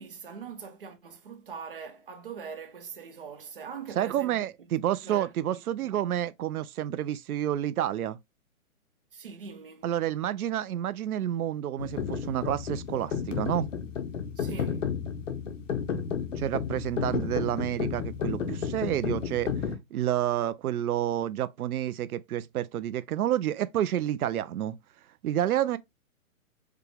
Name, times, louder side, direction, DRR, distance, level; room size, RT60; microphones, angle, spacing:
voice 1, 0.0-4.4 4.9-6.0 9.1-9.9 14.4-14.8, right 6 dB, 40° right, 0.6 m, -42 dB
voice 2, 4.0-8.2 9.8-13.6 16.4-19.5 19.9-24.8 25.2-25.8, right 11 dB, 85° right, 0.5 m, -29 dB
sound 1, 11.8-19.8, left 7 dB, 60° left, 0.9 m, -32 dB
5.0 x 2.2 x 3.3 m
hypercardioid pair, 175°, 42 cm